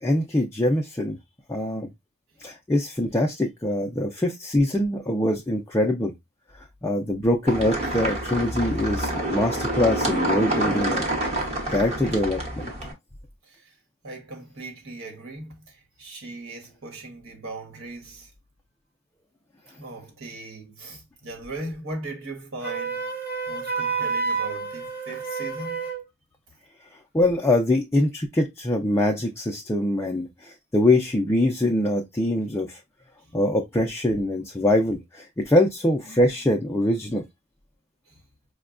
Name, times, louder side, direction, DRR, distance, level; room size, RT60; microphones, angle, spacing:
voice 1, 0.0-1.2 1.5-1.9 2.4-6.1 6.8-11.1 11.7-12.7 27.1-32.8 33.3-37.2, left 1 dB, 10° left, 0.4 m, -23 dB
sound 1, 7.5-12.9, right 1 dB, 30° right, 1.0 m, -27 dB
voice 2, 13.4-13.8 14.0-18.3 19.8-23.1 23.5-25.9 33.2-33.3 38.1-38.2, right 2 dB, 65° right, 1.2 m, -39 dB
Wind instrument woodwind instrument, 22.6-26.0, right 5 dB, 5° right, 0.9 m, -29 dB
4.9 x 2.2 x 2.4 m
head